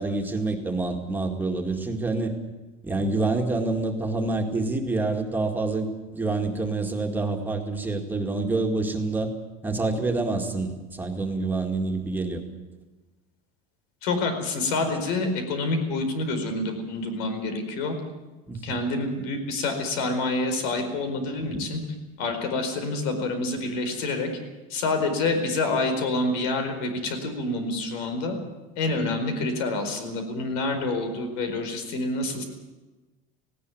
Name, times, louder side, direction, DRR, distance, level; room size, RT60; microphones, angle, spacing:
voice 1, 0.0-2.4 2.8-9.3 9.6-12.4 18.5-18.8, right 3 dB, 10° right, 2 dB, 2.1 m, -27 dB
voice 2, 14.0-18.0 18.6-21.8 22.2-24.3 24.7-28.4 28.8-32.4, left 2 dB, 90° left, 7 dB, 4.7 m, -27 dB
18.5 x 17.0 x 9.4 m, 1.2 s
cardioid pair, 150°, 18 cm